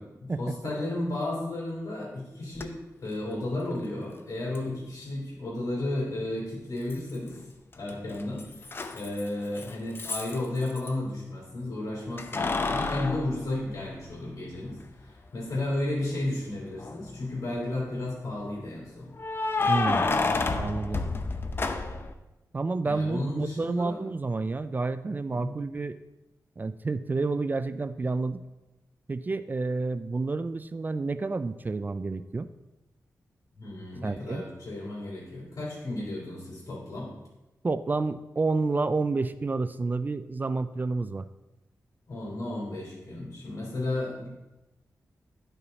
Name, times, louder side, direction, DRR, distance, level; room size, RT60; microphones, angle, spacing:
voice 1, 0.0-7.4 7.7-19.1 22.8-24.0 25.3-25.6 33.6-37.1 42.1-44.3, left 2 dB, 60° left, -5 dB, 3.2 m, -33 dB
Keys jangling, 2.6-2.7 4.5-4.6 6.9-7.4 7.7-10.9 12.2-14.3 14.8-14.9 16.7-17.2 19.2-22.1, left 3 dB, 35° left, 0.6 m, -30 dB
voice 2, 19.7-20.2 20.6-21.0 22.5-26.0 26.6-28.4 29.1-32.5 34.0-34.4 37.6-41.3, right 3 dB, 30° right, 13 dB, 0.3 m, -29 dB
11.0 x 5.8 x 4.0 m, 1.0 s
wide cardioid pair, 130°, 6 cm